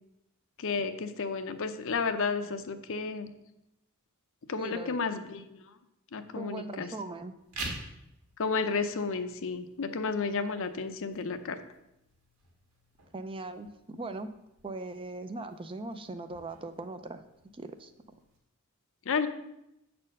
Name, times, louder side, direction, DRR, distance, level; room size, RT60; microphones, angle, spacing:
voice 1, 0.6-3.3 4.5-5.6 6.1-6.9 8.4-11.6 19.1-19.3, left 4 dB, 60° left, 9 dB, 0.6 m, -32 dB
voice 2, 4.6-5.0 6.4-7.3 13.1-14.3 14.6-17.2 17.5-17.9, right 2 dB, 25° right, 10 dB, 0.4 m, -39 dB
sound 1, 7.4-18.4, right 2 dB, 85° right, 2.0 m, -48 dB
7.3 x 4.3 x 6.5 m, 0.86 s
head